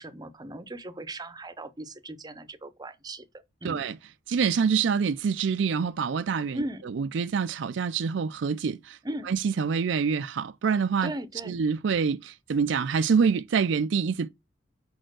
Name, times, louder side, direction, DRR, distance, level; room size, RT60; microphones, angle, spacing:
voice 1, 0.0-3.3 3.6-3.8 6.5-6.9 9.0-9.3 11.0-11.6, right 1 dB, 20° right, 0.7 m, -38 dB
voice 2, 3.6-4.0 4.3-9.0 9.3-11.1 11.5-14.3, right 6 dB, 65° right, 0.4 m, -26 dB
5.5 x 4.4 x 6.2 m
head